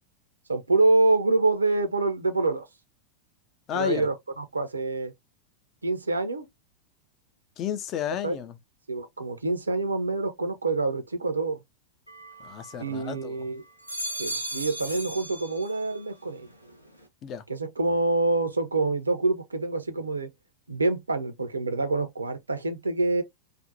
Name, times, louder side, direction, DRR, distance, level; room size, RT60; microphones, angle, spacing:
voice 1, 0.5-2.7 3.7-5.1 5.8-6.5 8.2-8.4 8.9-11.6 12.8-13.6 14.2-16.5 17.5-20.3 20.7-23.2, right 2 dB, 80° right, 0.5 m, -26 dB
voice 2, 3.7-4.0 7.6-8.6 12.4-13.4 17.2-17.4, left 9 dB, 35° left, 0.4 m, -32 dB
sound 1, 12.1-13.2 13.7-16.1 16.4-17.0, right 1 dB, 90° left, 0.5 m, -37 dB
2.5 x 2.0 x 2.6 m
figure-of-eight pair, 90°, 0 cm